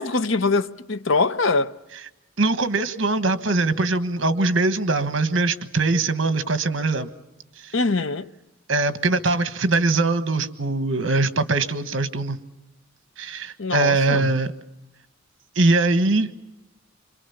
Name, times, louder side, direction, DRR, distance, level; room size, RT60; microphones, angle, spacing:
voice 1, 0.0-1.7 7.7-8.3 13.6-14.3, left 3 dB, 70° left, 0.9 m, -23 dB
voice 2, 2.4-7.1 8.7-12.4 13.2-14.5 15.5-16.3, right 3 dB, 65° right, 1.4 m, -22 dB
26.0 x 24.0 x 7.2 m
head